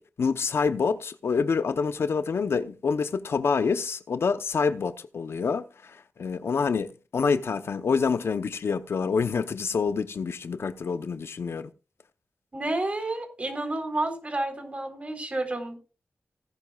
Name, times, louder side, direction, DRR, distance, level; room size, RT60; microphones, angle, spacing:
voice 1, 0.0-11.7, left 5 dB, 80° left, 0.8 m, -27 dB
voice 2, 12.5-15.8, right 2 dB, 30° right, 3.9 m, -30 dB
17.5 x 10.5 x 2.4 m
wide cardioid pair, 90°, 4 cm